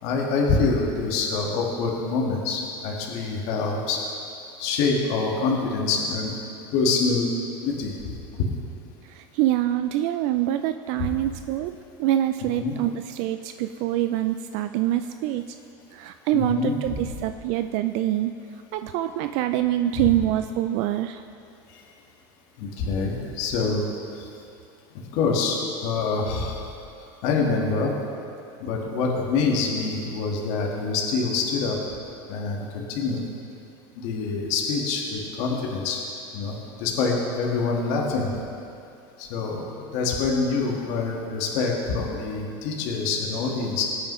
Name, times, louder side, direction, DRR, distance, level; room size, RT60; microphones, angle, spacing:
voice 1, 0.0-4.0 4.6-6.3 6.7-7.3 7.6-7.9 10.5-10.7 12.6-12.7 16.3-17.1 20.0-20.1 21.7-21.8 22.6-23.9 24.1-24.3 25.1-26.6 27.2-27.9 28.6-31.8 32.3-33.2 34.0-36.0 36.3-38.3 39.2-43.8, left 4 dB, 65° left, -2 dB, 1.7 m, -25 dB
voice 2, 9.1-15.4 15.9-18.3 18.7-21.2, right 13 dB, 60° right, 9 dB, 0.4 m, -25 dB
19.5 x 8.9 x 3.2 m, 2.6 s
supercardioid pair, 125°, 13 cm